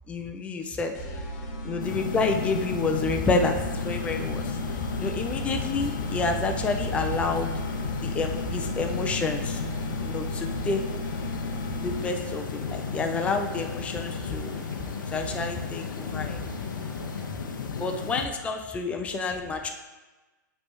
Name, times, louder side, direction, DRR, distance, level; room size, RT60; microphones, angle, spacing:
voice 1, 0.1-1.0 1.6-7.5 8.0-9.6 10.0-10.9 11.8-14.5 15.1-16.4 17.7-19.7, left 3 dB, 10° left, 4 dB, 0.4 m, -29 dB
sound 1, 0.9-12.4, left 1 dB, 45° left, 1.3 m, -35 dB
sound 2, 1.8-18.3, left 5 dB, 90° left, 0.5 m, -35 dB
Mechanical fan, 1.9-17.3, left 5 dB, 10° right, 1.1 m, -40 dB
9.3 x 3.3 x 3.1 m, 1.2 s
hypercardioid pair, 130°, 10 cm